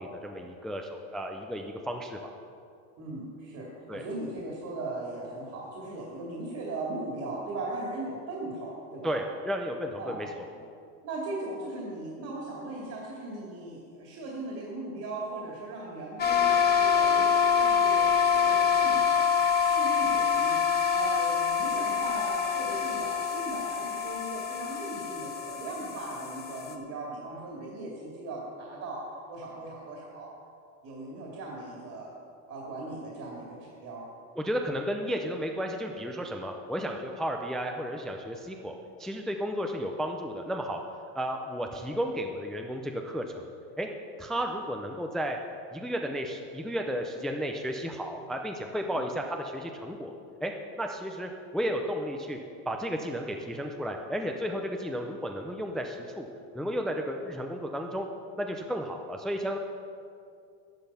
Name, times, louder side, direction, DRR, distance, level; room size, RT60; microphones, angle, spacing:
voice 1, 0.0-2.3 3.9-4.0 9.0-10.3 34.4-38.7 39.0-40.8 41.1-43.5 43.8-43.9 44.2-45.4 45.7-50.1 50.4-50.5 50.8-52.4 52.7-56.3 56.5-58.1 58.4-59.6, equal, ahead, 3 dB, 0.4 m, -33 dB
voice 2, 3.0-9.1 10.0-10.2 11.0-20.6 20.9-30.3 30.8-32.1 32.5-34.1 48.9-49.1, right 2 dB, 45° right, -3 dB, 2.6 m, -38 dB
sound 1, 16.2-26.7, left 7 dB, 25° left, 1.1 m, -26 dB
11.5 x 10.5 x 5.6 m, 2.5 s
supercardioid pair, 145°, 40 cm